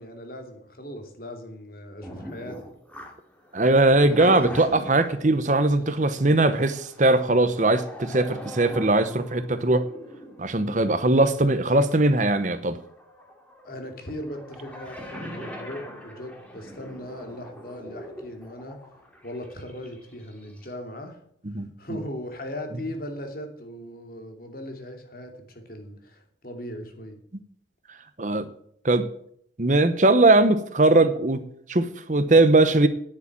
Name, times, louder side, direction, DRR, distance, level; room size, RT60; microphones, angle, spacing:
voice 1, 0.0-2.6 13.6-18.8 19.2-21.2 21.5-27.2, left 1 dB, 50° left, 2.7 m, -38 dB
sound 1, 2.0-20.7, equal, 10° left, 2.3 m, -42 dB
voice 2, 3.5-9.8 10.4-12.8 21.5-21.7 28.2-28.5 28.8-29.1 29.6-31.4 31.7-32.9, right 2 dB, 40° right, 0.9 m, -20 dB
10.0 x 8.3 x 8.8 m
head